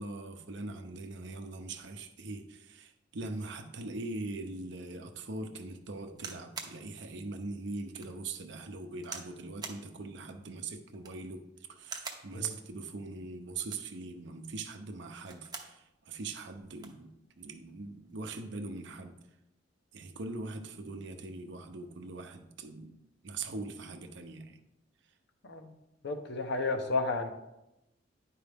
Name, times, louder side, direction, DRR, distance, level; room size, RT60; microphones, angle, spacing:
voice 1, 0.0-11.4 11.7-19.2 19.9-23.0 23.2-24.6, right 3 dB, 65° right, 5 dB, 0.7 m, -41 dB
sound 1, 6.1-6.8 7.4-7.5 7.9-8.1 9.0-9.3 9.6-9.8 10.9-11.3 11.8-12.3 13.5-14.0 15.1-15.8 16.2-16.3 16.5-17.0 17.8-18.1, right 5 dB, 20° right, 0.7 m, -44 dB
voice 2, 26.0-27.3, left 3 dB, 65° left, 6 dB, 0.8 m, -32 dB
10.0 x 4.6 x 3.5 m, 0.91 s
head